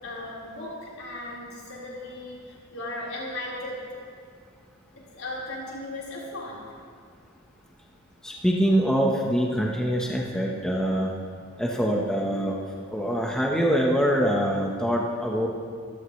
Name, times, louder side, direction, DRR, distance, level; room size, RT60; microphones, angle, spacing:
voice 1, 0.0-4.0 4.9-6.6, left 1 dB, 75° left, -6 dB, 4.8 m, -36 dB
voice 2, 8.2-11.1 11.6-12.6 12.9-15.5, equal, 5° left, -3 dB, 1.3 m, -24 dB
24.0 x 15.5 x 3.4 m, 2.2 s
head